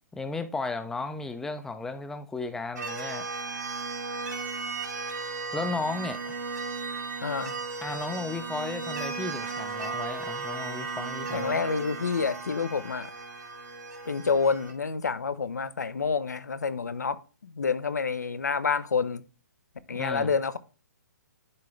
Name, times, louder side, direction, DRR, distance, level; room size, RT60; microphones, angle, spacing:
voice 1, 0.1-3.3 5.5-6.4 7.8-11.6 20.0-20.3, left 3 dB, 5° left, 0.6 m, -34 dB
sound 1, 2.8-14.7, right 4 dB, 70° right, 2.2 m, -35 dB
voice 2, 7.2-7.6 11.3-13.1 14.1-19.2 19.9-20.6, left 5 dB, 70° left, 0.7 m, -28 dB
11.0 x 3.7 x 3.3 m
figure-of-eight pair, 130°, 10 cm